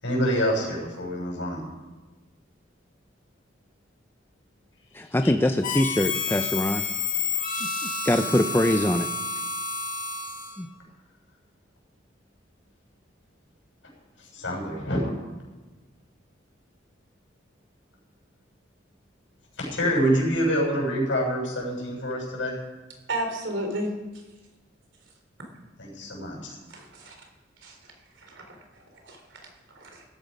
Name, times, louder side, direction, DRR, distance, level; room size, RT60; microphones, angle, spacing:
voice 1, 0.0-1.6 5.2-5.3 14.2-15.1 19.6-22.6 25.8-26.6, equal, 80° left, -2 dB, 6.8 m, -26 dB
voice 2, 4.9-6.8 7.6-9.1 10.6-10.7, left 1 dB, 10° left, 7 dB, 0.5 m, -24 dB
Harmonica, 5.6-10.7, left 4 dB, 45° left, 2.0 m, -30 dB
voice 3, 23.1-24.2 26.7-27.2 27.6-30.0, right 1 dB, 75° right, 3 dB, 3.6 m, -34 dB
16.5 x 13.5 x 5.4 m, 1.2 s
head